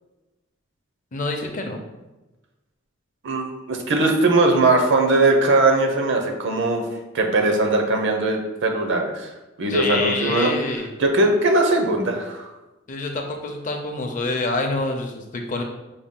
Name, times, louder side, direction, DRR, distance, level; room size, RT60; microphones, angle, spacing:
voice 1, 1.1-1.8 9.7-10.9 12.9-15.6, left 2 dB, 40° left, 3 dB, 0.5 m, -27 dB
voice 2, 3.2-6.8 7.1-9.3 9.6-10.5 11.0-12.5, right 2 dB, 65° right, 3 dB, 0.7 m, -20 dB
5.1 x 2.3 x 3.7 m, 1.1 s
head